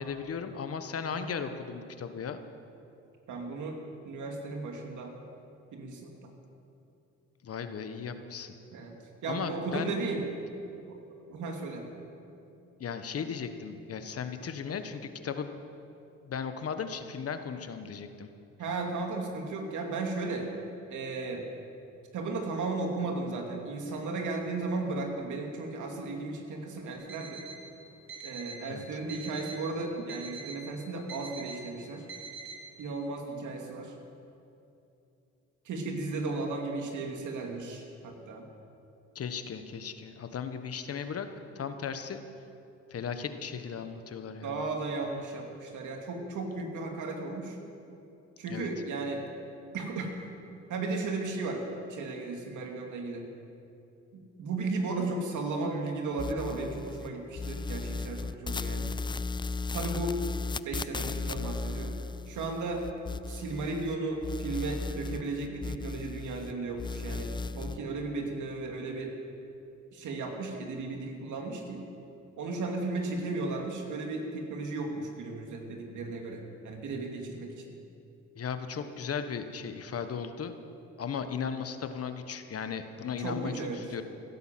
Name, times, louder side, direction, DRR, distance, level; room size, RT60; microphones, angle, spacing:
voice 1, 0.0-2.4 7.4-8.5 9.3-9.9 12.8-15.5 16.2-18.3 28.7-28.8 39.1-41.3 41.5-42.2 42.9-44.6 48.5-48.7 78.4-80.5 81.0-84.0, left 6 dB, 50° left, 8 dB, 1.2 m, -36 dB
voice 2, 1.0-1.4 3.3-3.8 4.0-5.1 5.7-6.3 8.7-9.0 9.2-10.2 10.9-11.0 11.3-11.9 18.6-20.5 20.9-21.5 22.1-27.5 28.2-32.1 32.8-33.9 35.6-38.5 44.4-47.6 48.4-49.2 49.7-50.1 50.7-51.6 51.9-53.3 54.1-59.0 59.7-60.2 60.6-62.0 62.3-62.9 63.3-69.1 69.9-71.8 72.4-77.8 83.2-83.8, right 3 dB, 75° right, 2 dB, 2.6 m, -35 dB
Alarm, 26.9-27.6 28.1-28.6 29.1-29.6 30.1-30.6 31.1-31.6 32.1-32.6, right 5 dB, 45° right, 4.2 m, -43 dB
sound 1, 56.2-57.1 57.3-64.0 64.2-66.5 66.8-67.8, left 4 dB, 15° left, 0.3 m, -36 dB
16.0 x 11.0 x 7.6 m, 2.7 s
cardioid pair, 90°, 30 cm